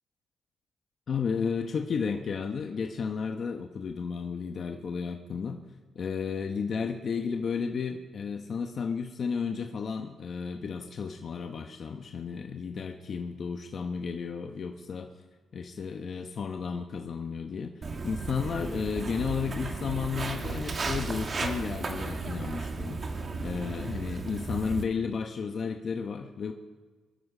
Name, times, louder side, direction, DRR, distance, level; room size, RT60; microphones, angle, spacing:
voice 1, 1.1-5.6 5.9-15.1 15.5-23.0 23.4-26.5, left 6 dB, 55° left, 4 dB, 0.9 m, -33 dB
Walk footsteps, 17.8-24.8, right 4 dB, 40° right, 1.6 m, -34 dB
23.0 x 12.5 x 5.0 m, 1.4 s
cardioid pair, 95°, 0 cm